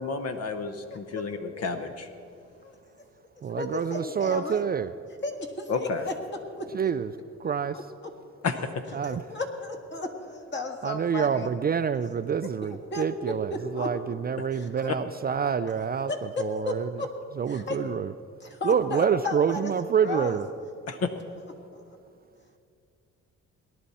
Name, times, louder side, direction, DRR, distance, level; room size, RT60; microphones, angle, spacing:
voice 1, 0.0-2.1 5.7-6.0 8.4-8.7 20.9-21.1, left 4 dB, 55° left, 7 dB, 0.9 m, -31 dB
voice 2, 0.9-1.2 2.6-2.7 3.5-4.7 5.2-6.7 9.0-11.5 12.6-13.9 14.5-14.7 16.1-17.1 17.5-17.8 18.4-19.7 20.0-20.4, left 2 dB, 35° left, 3 dB, 1.7 m, -34 dB
voice 3, 3.4-4.9 6.7-7.1 7.4-7.8 8.9-9.2 10.8-17.0 17.3-18.1 18.6-20.5, right 7 dB, 30° right, 11 dB, 0.4 m, -27 dB
18.5 x 11.0 x 4.2 m, 2.4 s
cardioid pair, 90°, 30 cm